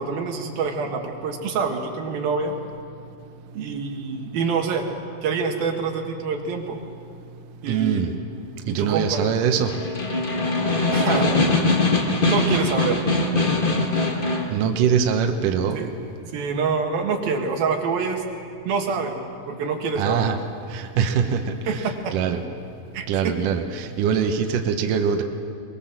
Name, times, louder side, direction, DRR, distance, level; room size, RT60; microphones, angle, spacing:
voice 1, 0.0-2.6 3.5-4.9 5.2-6.8 7.6-8.0 8.7-9.3 10.9-11.3 12.3-13.0 15.7-15.9 16.2-18.2 18.7-20.3 21.7-22.2 22.9-23.3, right 5 dB, 90° right, 2 dB, 3.6 m, -26 dB
voice 2, 7.7-8.1 8.7-9.7 14.5-15.8 20.0-20.4 20.7-21.4 21.7-22.4 23.1-25.2, right 7 dB, 70° right, 4 dB, 2.5 m, -23 dB
Snare drum, 9.6-14.6, left 2 dB, 30° left, 0.9 m, -22 dB
22.5 x 22.0 x 7.4 m, 2.3 s
omnidirectional pair, 4.1 m